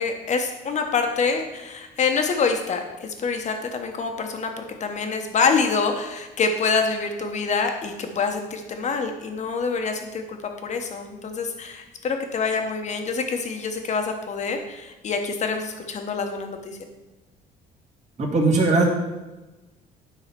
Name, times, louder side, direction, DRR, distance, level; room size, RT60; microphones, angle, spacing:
voice 1, 0.0-16.8, left 5 dB, 45° left, 5 dB, 1.3 m, -26 dB
voice 2, 18.2-18.8, right 3 dB, 40° right, -2 dB, 2.3 m, -19 dB
10.0 x 4.0 x 6.0 m, 1.1 s
cardioid pair, 110°, 17 cm